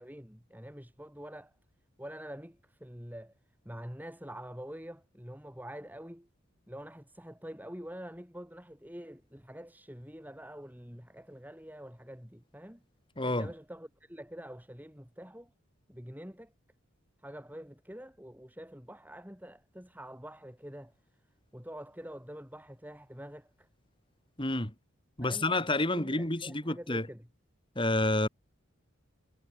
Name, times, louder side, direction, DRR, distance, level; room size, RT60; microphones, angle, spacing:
voice 1, 0.0-1.5 2.0-3.4 3.7-6.3 6.7-12.8 13.2-15.5 15.9-16.5 17.2-20.9 21.5-23.7 25.2-25.5 25.9-27.3, equal, 10° right, 7.2 m, -46 dB
voice 2, 13.2-13.5 24.4-24.7 25.2-27.1 27.8-28.3, left 2 dB, 25° left, 2.9 m, -29 dB
head